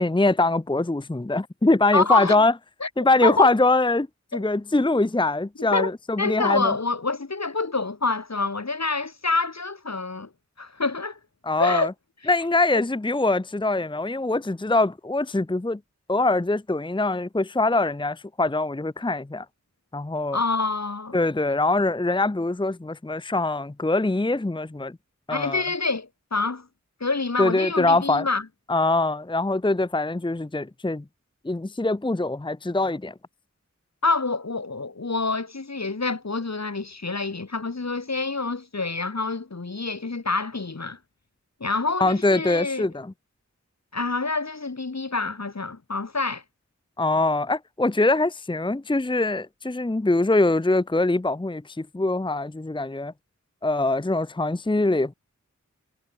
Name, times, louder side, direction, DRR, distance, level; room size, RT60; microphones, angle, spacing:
voice 1, 0.0-2.5 3.0-4.1 4.3-6.7 11.4-11.9 12.3-15.8 16.1-19.5 19.9-20.4 21.1-25.0 25.3-25.6 27.4-28.3 28.7-31.0 31.4-33.1 42.0-43.1 47.0-53.1 53.6-55.1, left 2 dB, 15° left, 0.7 m, -23 dB
voice 2, 1.9-2.4 2.8-2.9 3.2-3.5 4.3-4.4 5.6-5.9 6.2-10.3 10.6-11.2 11.6-11.9 12.7-12.8 20.3-21.2 25.3-26.7 27.0-28.4 34.0-41.0 41.6-42.9 43.9-46.4, left 3 dB, 65° left, 2.4 m, -27 dB
wide cardioid pair, 45°, 30 cm